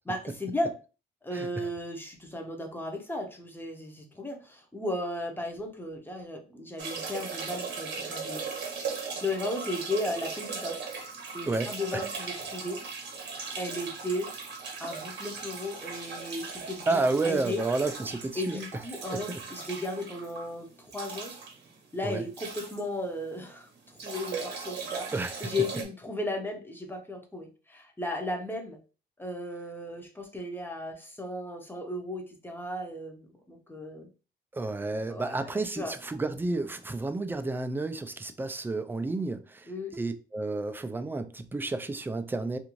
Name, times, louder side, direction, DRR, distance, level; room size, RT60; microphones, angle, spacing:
voice 1, 0.1-0.7 1.2-10.8 11.3-12.9 13.6-14.3 14.8-17.6 18.4-21.3 21.9-25.1 25.4-28.8 29.2-34.1 35.1-36.0 39.7-39.9, left 1 dB, 10° left, 0.7 m, -35 dB
voice 2, 1.3-1.7 11.5-12.1 16.9-18.6 18.9-19.4 22.0-22.2 25.1-25.5 34.5-42.6, right 3 dB, 10° right, 0.3 m, -31 dB
sound 1, 6.8-23.5 23.8-25.8, right 5 dB, 60° right, 0.8 m, -38 dB
2.5 x 2.5 x 3.0 m
cardioid pair, 90°, 20 cm